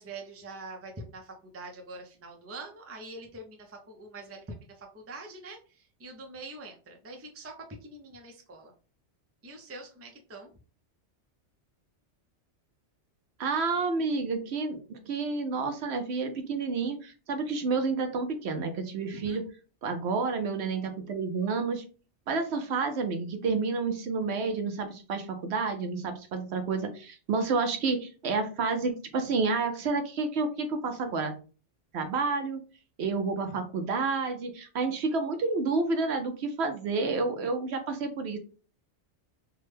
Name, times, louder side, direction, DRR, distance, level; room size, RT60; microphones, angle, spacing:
voice 1, 0.0-8.7 9.4-10.5 19.1-19.4, right 2 dB, 20° right, 2 dB, 0.4 m, -44 dB
voice 2, 13.4-19.4 19.8-21.8 22.3-31.3 31.9-32.6 33.0-38.4, right 4 dB, 65° right, 6 dB, 0.9 m, -30 dB
3.4 x 2.1 x 3.3 m, 0.36 s
omnidirectional pair, 1.2 m